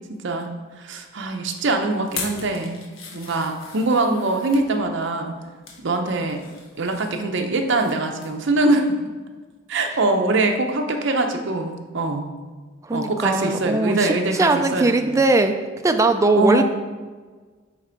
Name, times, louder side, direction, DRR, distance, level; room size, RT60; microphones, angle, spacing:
voice 1, 0.2-2.8 3.1-5.3 5.8-6.4 6.8-8.8 9.7-12.3 12.9-15.1 16.3-16.6, right 2 dB, 65° right, 4 dB, 0.7 m, -23 dB
sound 1, 2.0-4.6 5.3-5.8 6.2-7.9 8.2-8.4 8.8-8.9, left 4 dB, 85° left, 1.1 m, -38 dB
voice 2, 12.8-15.6 15.8-16.6, right 2 dB, 15° right, 7 dB, 0.3 m, -20 dB
7.4 x 3.5 x 4.5 m, 1.4 s
head